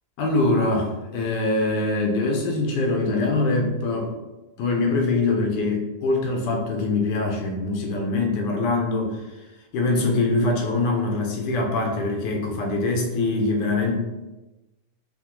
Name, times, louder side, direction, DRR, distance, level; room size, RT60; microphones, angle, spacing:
voice 1, 0.2-4.1 4.6-9.2 9.7-14.0, left 2 dB, 85° left, 2 dB, 1.3 m, -23 dB
3.6 x 2.1 x 2.9 m, 1.1 s
omnidirectional pair, 1.8 m